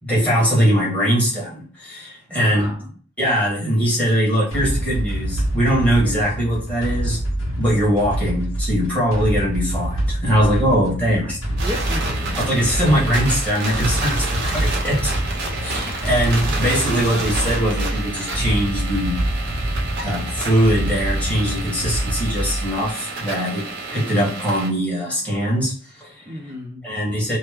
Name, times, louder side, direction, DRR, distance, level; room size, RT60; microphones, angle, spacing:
voice 1, 0.0-2.7 3.2-7.2 7.6-11.4 12.4-15.2 15.6-19.2 20.0-26.4 26.8-27.4, equal, 5° left, -5 dB, 1.3 m, -21 dB
voice 2, 2.3-2.9 11.0-11.3 11.6-12.6 26.3-26.8, left 1 dB, 15° right, -3 dB, 0.4 m, -34 dB
sound 1, 4.5-22.9, right 1 dB, 65° left, 1.3 m, -26 dB
sound 2, 11.6-24.7, right 3 dB, 55° right, 0.9 m, -30 dB
3.0 x 2.1 x 3.4 m, 0.43 s
head